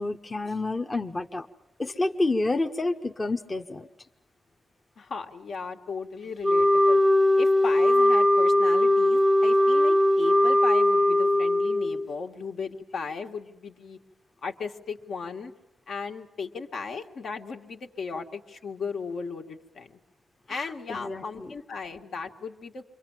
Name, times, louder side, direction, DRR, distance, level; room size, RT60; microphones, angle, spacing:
voice 1, 0.0-1.5 1.8-3.9 20.5-21.5, left 2 dB, 25° left, 5 dB, 1.0 m, -29 dB
voice 2, 5.0-7.0 7.4-14.0 14.4-15.5 15.9-20.0 20.5-22.8, left 5 dB, 65° left, 4 dB, 2.1 m, -36 dB
Wind instrument woodwind instrument, 6.4-12.1, left 1 dB, 5° right, 0.9 m, -20 dB
28.0 x 24.0 x 7.5 m, 0.88 s
wide cardioid pair, 125°, 0 cm